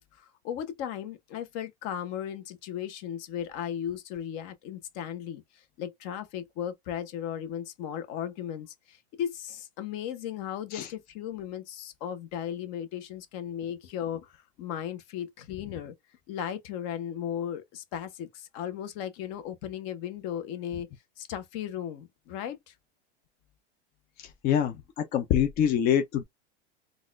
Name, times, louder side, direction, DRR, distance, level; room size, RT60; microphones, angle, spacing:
voice 1, 0.0-5.4 5.8-14.3 14.6-15.9 16.3-20.9 21.2-22.7, left 9 dB, 50° left, 0.9 m, -36 dB
voice 2, 24.2-24.8 25.1-26.2, left 9 dB, 30° left, 0.4 m, -25 dB
3.9 x 2.4 x 2.4 m
supercardioid pair, 140°, 33 cm